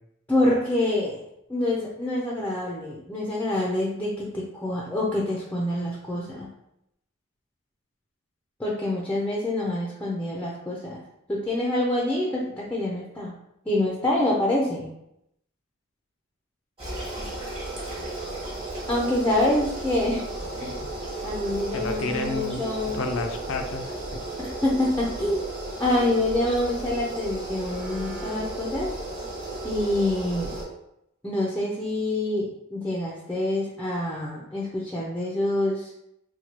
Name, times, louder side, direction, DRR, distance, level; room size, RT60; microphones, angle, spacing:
voice 1, 0.3-1.2 1.5-6.5 8.6-11.0 11.3-13.3 13.7-14.9 18.9-20.2 20.6-20.8 21.2-23.0 24.4-25.5 25.8-29.0 29.6-30.5 31.2-35.9, left 1 dB, 10° left, -3 dB, 0.5 m, -26 dB
sound 1, 16.8-30.6, right 2 dB, 30° right, 1.2 m, -34 dB
voice 2, 21.7-22.6 22.9-24.3, left 3 dB, 70° left, 5 dB, 0.5 m, -31 dB
4.3 x 2.2 x 2.9 m, 0.79 s
head